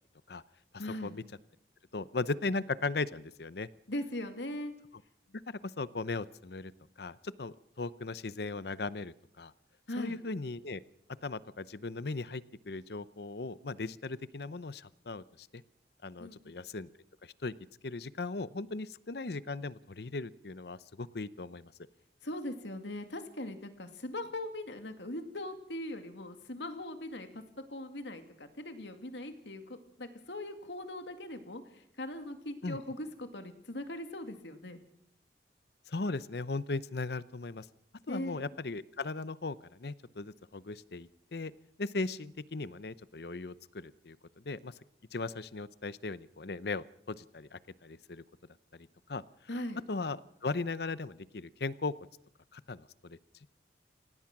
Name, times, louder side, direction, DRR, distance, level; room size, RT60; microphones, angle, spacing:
voice 1, 0.8-1.1 3.9-4.7 9.9-10.2 16.2-16.6 22.2-27.4 27.7-34.8 38.1-38.4 49.5-49.8, left 1 dB, 80° left, 7 dB, 2.4 m, -40 dB
voice 2, 1.9-3.7 5.5-6.7 7.0-9.5 10.0-10.8 11.2-15.6 16.0-16.9 17.2-17.5 17.8-21.7 32.6-32.8 35.9-37.7 38.1-41.5 41.8-44.2 44.4-44.7 45.1-48.2 48.7-49.2 49.9-51.9 52.5-53.2, left 3 dB, 65° left, 17 dB, 0.7 m, -38 dB
25.5 x 18.0 x 6.1 m, 0.74 s
head